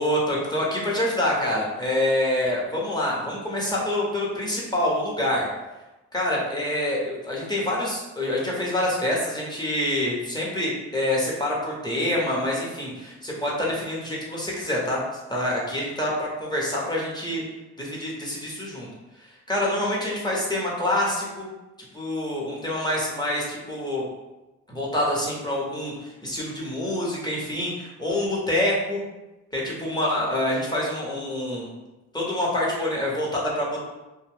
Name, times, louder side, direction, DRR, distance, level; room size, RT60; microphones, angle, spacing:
voice 1, 0.0-5.5 6.1-15.0 15.3-17.4 17.8-18.9 19.5-21.5 21.9-24.0 24.7-29.0 29.5-31.7 32.1-33.8, left 1 dB, 15° left, -4 dB, 1.0 m, -26 dB
2.5 x 2.3 x 3.5 m, 1.0 s
cardioid pair, 90°, 30 cm